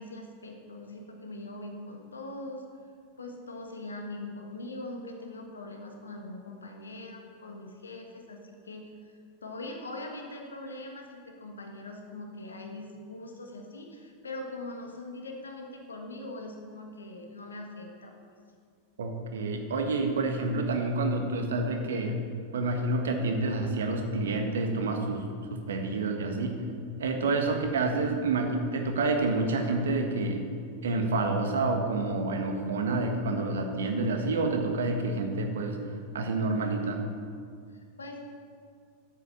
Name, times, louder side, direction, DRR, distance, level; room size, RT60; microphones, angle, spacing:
voice 1, 0.0-2.6 3.2-8.4 8.6-18.1 37.7-38.2, left 2 dB, 75° left, 2 dB, 1.5 m, -42 dB
voice 2, 19.0-22.2 22.5-26.6 27.0-30.5 30.8-35.8 36.1-37.0, right 3 dB, 65° right, 4 dB, 1.5 m, -28 dB
10.5 x 8.3 x 7.5 m, 2.2 s
figure-of-eight pair, 90°, 0 cm